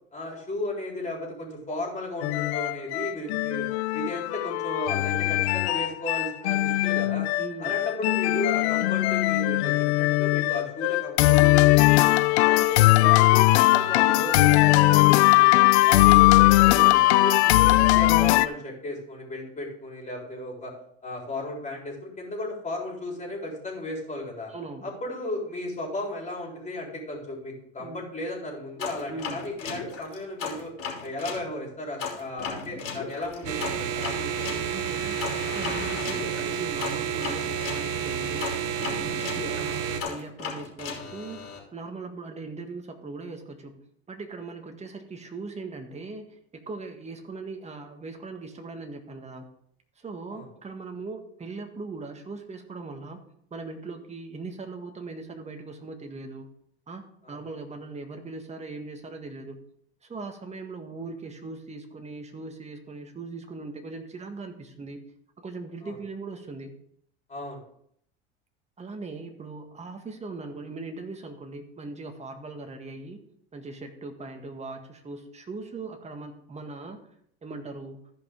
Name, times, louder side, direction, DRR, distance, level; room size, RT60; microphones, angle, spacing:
voice 1, 0.1-3.7 3.9-7.3 7.6-12.1 12.4-17.4 17.7-20.7 21.0-24.5 24.8-30.7 31.0-34.5 50.3-50.5 57.2-57.4 65.8-66.0 67.3-67.6, left 1 dB, 20° left, -1 dB, 4.0 m, -35 dB
sound 1, 2.2-18.5, left 18 dB, 85° left, 0.5 m, -20 dB
voice 2, 7.4-7.7 14.7-15.0 17.4-17.8 24.5-24.9 27.8-28.1 29.1-29.4 34.1-41.4 41.7-43.8 44.1-49.5 50.0-53.2 53.5-56.5 56.9-59.6 60.0-65.0 65.4-66.7 68.8-73.2 73.5-77.0 77.4-78.0, right 3 dB, 20° right, 4 dB, 1.7 m, -39 dB
sound 2, 28.8-31.4 32.0-37.8 38.4-41.6, left 5 dB, 45° left, 3.2 m, -36 dB
sound 3, 33.5-40.0, right 8 dB, 90° right, 1.1 m, -30 dB
14.5 x 5.5 x 3.7 m, 0.68 s
supercardioid pair, 95°, 32 cm